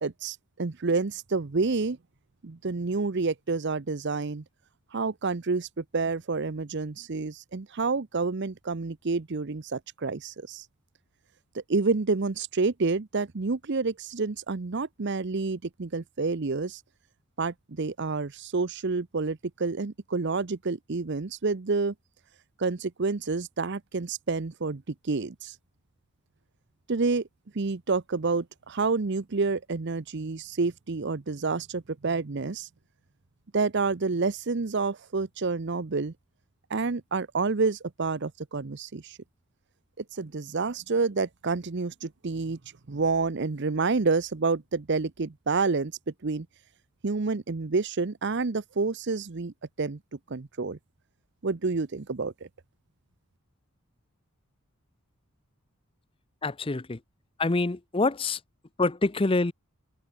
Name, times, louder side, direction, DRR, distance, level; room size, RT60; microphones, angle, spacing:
voice 1, 0.0-2.0 2.4-4.4 4.9-10.6 11.5-16.8 17.4-21.9 22.6-25.5 26.9-27.2 27.5-32.7 33.5-36.1 36.7-39.2 40.0-42.6 42.9-45.9 46.2-46.5 47.0-50.0 50.3-50.8 51.4-52.3, right 4 dB, 55° right, 0.7 m, -29 dB
voice 2, 56.4-57.0 57.4-58.4 58.8-59.5, left 3 dB, 25° left, 0.6 m, -26 dB
head